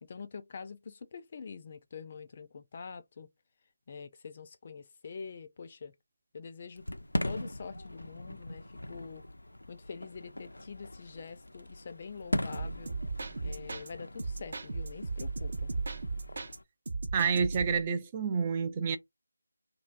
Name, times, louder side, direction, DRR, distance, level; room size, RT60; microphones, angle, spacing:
voice 1, 0.0-3.3 3.9-5.9 6.3-6.8 7.2-9.2 9.7-13.0 13.4-15.7, left 5 dB, 35° left, 0.5 m, -45 dB
Fireworks, 6.8-16.6, left 1 dB, 85° left, 0.6 m, -40 dB
sound 1, 12.5-13.9 14.2-16.6 16.9-17.9, right 3 dB, 55° right, 0.7 m, -36 dB
voice 2, 17.1-19.0, right 6 dB, 25° right, 0.4 m, -29 dB
3.0 x 2.7 x 2.5 m
figure-of-eight pair, 160°, 0 cm